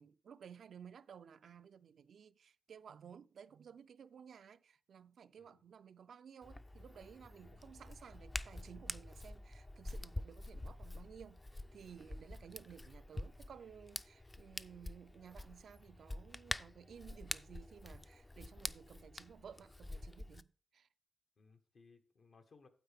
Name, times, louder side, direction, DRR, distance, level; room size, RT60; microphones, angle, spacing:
voice 1, 0.0-11.4 11.7-20.9, right 7 dB, 85° right, 0.3 m, -56 dB
Hands, 6.4-20.4, left 2 dB, 25° left, 0.4 m, -47 dB
voice 2, 7.4-7.9 12.1-12.4 21.4-22.7, left 4 dB, 75° left, 1.2 m, -65 dB
9.1 x 8.2 x 3.5 m
cardioid pair, 75°, 0 cm